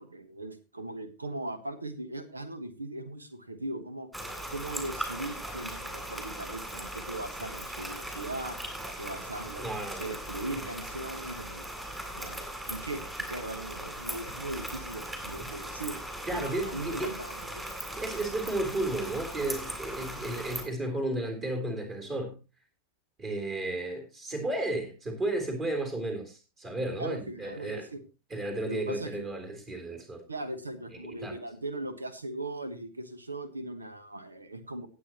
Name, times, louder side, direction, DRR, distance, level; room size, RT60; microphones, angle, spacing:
voice 1, 0.0-4.1 4.5-8.6 9.0-11.7 12.1-16.0 16.3-17.6 27.0-28.0 28.7-29.2 30.3-34.9, right 2 dB, 80° right, 12 dB, 1.3 m, -39 dB
sound 1, 4.1-20.6, right 1 dB, 10° right, 3.1 m, -39 dB
voice 2, 9.6-10.0 10.6-10.7 12.4-12.5 16.3-17.1 17.9-22.4 23.2-27.9 28.3-30.2 31.0-31.4, right 2 dB, 25° right, 4 dB, 3.6 m, -33 dB
18.5 x 7.9 x 2.9 m, 0.29 s
figure-of-eight pair, 90°, 0 cm